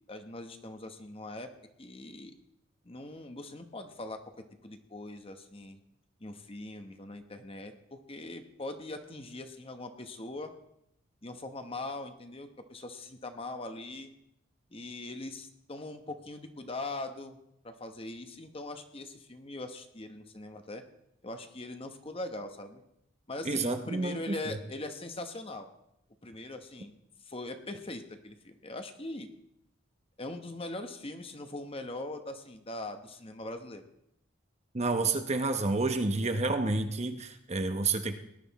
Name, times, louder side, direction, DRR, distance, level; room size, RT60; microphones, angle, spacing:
voice 1, 0.1-1.5 1.8-2.3 2.8-4.2 4.6-5.8 6.2-10.5 11.2-14.1 14.7-17.4 17.6-20.8 21.2-22.8 23.3-25.7 26.2-26.9 27.2-29.3 30.2-33.8, left 2 dB, 30° left, 7 dB, 1.1 m, -41 dB
voice 2, 23.4-24.6 34.7-38.1, right 3 dB, 35° right, 7 dB, 0.9 m, -29 dB
18.5 x 11.0 x 4.1 m, 0.78 s
head